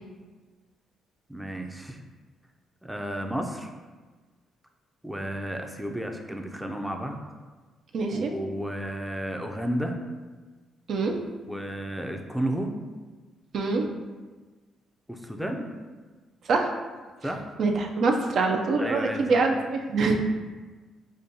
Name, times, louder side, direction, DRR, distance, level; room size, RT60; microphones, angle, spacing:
voice 1, 1.3-2.0 2.8-3.7 5.0-7.2 8.1-9.9 11.5-12.7 15.1-15.7 17.2-17.5 18.8-19.4, right 1 dB, 5° right, 3 dB, 0.4 m, -32 dB
voice 2, 7.9-8.3 10.9-11.2 13.5-13.8 16.5-16.7 17.6-20.2, right 3 dB, 65° right, 2 dB, 0.4 m, -24 dB
5.0 x 2.2 x 2.7 m, 1.3 s
cardioid pair, 90°, 0 cm